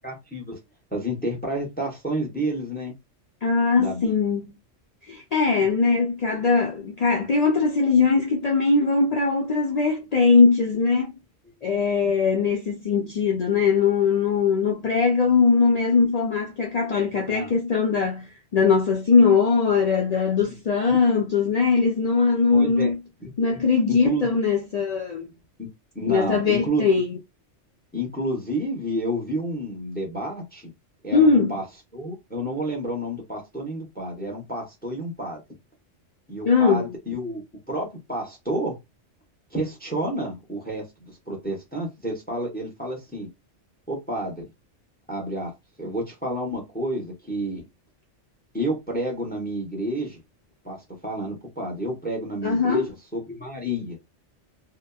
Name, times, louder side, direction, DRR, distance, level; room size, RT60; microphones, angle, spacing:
voice 1, 0.0-0.6 0.9-2.9 3.8-4.2 17.3-17.5 20.4-20.5 20.9-21.0 22.5-22.9 23.2-23.6 24.0-24.3 25.6-25.7 25.9-26.9 27.9-30.7 31.0-31.6 31.9-35.4 36.3-38.8 39.5-43.3 43.9-44.5 45.1-45.5 45.8-47.6 48.5-50.2 50.6-50.8 51.0-54.0, right 1 dB, 10° left, 0.7 m, -30 dB
voice 2, 3.4-4.6 5.1-11.1 11.6-23.0 23.4-25.3 26.1-27.2 31.1-31.5 36.5-36.9 52.4-52.9, left 5 dB, 80° left, 0.3 m, -21 dB
2.8 x 2.1 x 2.2 m
omnidirectional pair, 1.2 m